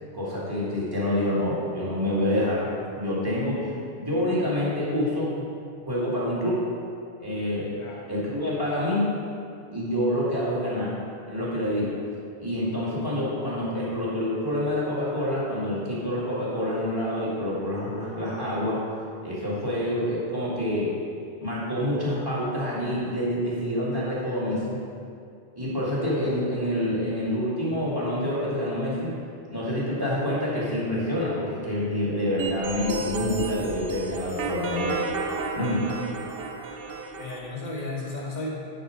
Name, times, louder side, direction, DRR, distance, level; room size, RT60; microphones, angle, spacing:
voice 1, 0.1-2.7 2.9-5.5 5.9-6.6 7.2-7.7 8.1-9.1 9.7-11.0 11.3-11.9 12.4-18.8 19.2-20.9 21.4-24.8 25.6-29.2 29.5-35.0 35.5-36.0, left 1 dB, 20° right, -8 dB, 2.3 m, -27 dB
voice 2, 7.8-8.1 37.2-38.5, left 2 dB, 45° left, -3 dB, 1.5 m, -34 dB
sound 1, 32.4-37.4, right 4 dB, 65° right, 0.9 m, -31 dB
10.5 x 4.4 x 5.2 m, 2.4 s
omnidirectional pair, 1.1 m